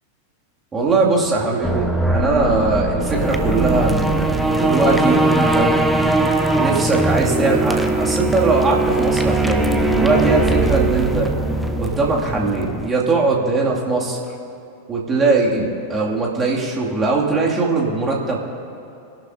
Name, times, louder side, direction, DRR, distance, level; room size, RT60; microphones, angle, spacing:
voice 1, 0.7-5.7 6.5-11.3 11.8-14.2 14.9-18.4, right 3 dB, 20° right, -3 dB, 2.3 m, -20 dB
sound 1, 1.6-12.9, right 2 dB, ahead, 0.8 m, -20 dB
24.0 x 11.5 x 2.7 m, 2.7 s
figure-of-eight pair, 90°, 0 cm